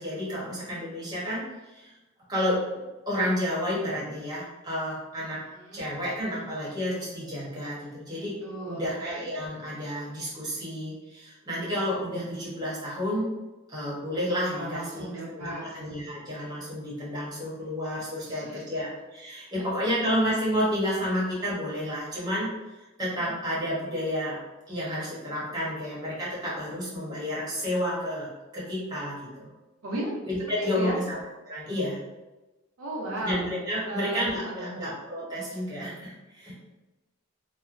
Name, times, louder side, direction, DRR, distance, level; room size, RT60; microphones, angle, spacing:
voice 1, 0.0-1.9 2.3-2.6 3.1-5.4 5.7-8.4 8.7-13.3 13.7-15.0 15.3-22.5 23.0-24.4 24.7-29.5 30.2-31.2 31.5-32.0 33.2-36.5, equal, 20° right, -7 dB, 0.9 m, -30 dB
voice 2, 5.5-5.9 8.4-9.0 14.5-15.7 18.2-18.7 29.8-30.1 30.6-31.0 32.8-33.4 33.9-34.8, right 1 dB, 80° right, -3 dB, 0.6 m, -35 dB
3.0 x 2.0 x 2.4 m, 1.1 s
head